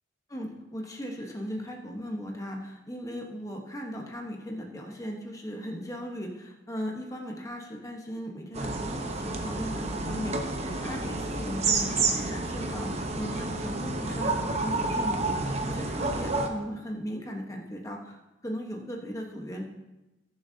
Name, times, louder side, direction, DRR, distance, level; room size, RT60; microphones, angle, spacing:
voice 1, 0.3-18.2 18.4-19.7, equal, 15° left, 1 dB, 1.2 m, -37 dB
sound 1, 8.5-16.5, right 3 dB, 35° right, 1.0 m, -30 dB
19.5 x 7.3 x 2.8 m, 1.0 s
head